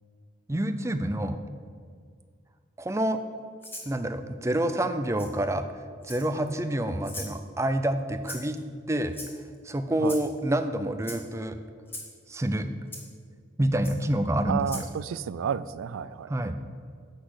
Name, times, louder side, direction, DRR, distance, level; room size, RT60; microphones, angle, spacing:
voice 1, 0.5-1.4 2.8-3.2 3.8-8.6 8.9-9.2 9.6-11.6 12.3-12.7 13.6-14.9 16.3-16.5, right 1 dB, 15° right, 9 dB, 0.4 m, -28 dB
Rattle (instrument), 3.6-3.9 5.2-5.3 6.0-6.5 7.0-7.3 8.2-8.6 9.1-9.6 10.0-10.3 11.0-11.2 11.9-12.1 12.9-13.0 13.8-13.9 14.6-14.9, left 2 dB, 10° left, 1.3 m, -40 dB
voice 2, 14.5-16.3, right 7 dB, 85° right, 17 dB, 0.3 m, -31 dB
8.2 x 6.0 x 6.3 m, 2.1 s
head